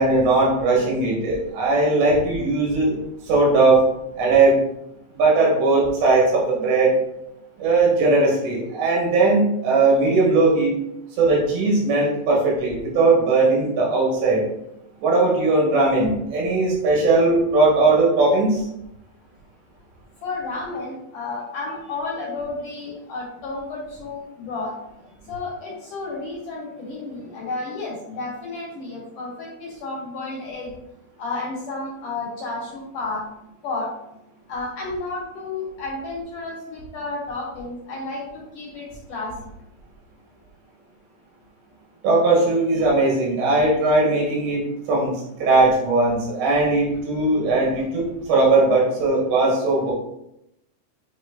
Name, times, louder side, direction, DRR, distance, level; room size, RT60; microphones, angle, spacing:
voice 1, 0.0-3.0 3.3-3.9 4.2-4.6 5.2-7.0 7.6-10.7 11.2-14.4 15.0-18.6 42.0-45.1 45.4-48.0 48.3-49.9, right 3 dB, 75° right, -4 dB, 4.1 m, -19 dB
voice 2, 20.2-24.7 25.3-30.7 31.2-33.2 33.6-33.9 34.5-39.3, left 3 dB, 60° left, -4 dB, 2.3 m, -32 dB
8.8 x 3.2 x 4.1 m, 0.83 s
omnidirectional pair, 5.0 m